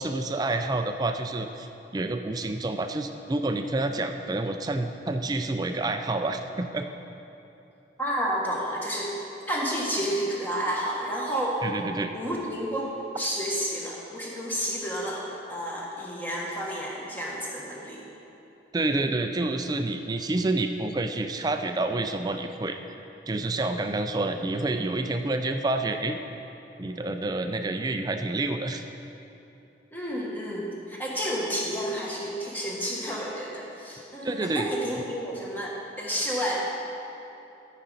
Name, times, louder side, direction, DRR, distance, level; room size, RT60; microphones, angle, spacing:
voice 1, 0.0-1.7 1.9-6.9 11.6-12.1 18.7-23.0 23.3-26.2 26.8-28.8 34.2-34.7, right 2 dB, 20° right, 6 dB, 0.3 m, -28 dB
voice 2, 8.0-9.2 9.5-11.6 12.1-18.0 29.9-36.6, equal, 10° left, -4 dB, 1.4 m, -30 dB
13.0 x 5.1 x 5.6 m, 3.0 s
head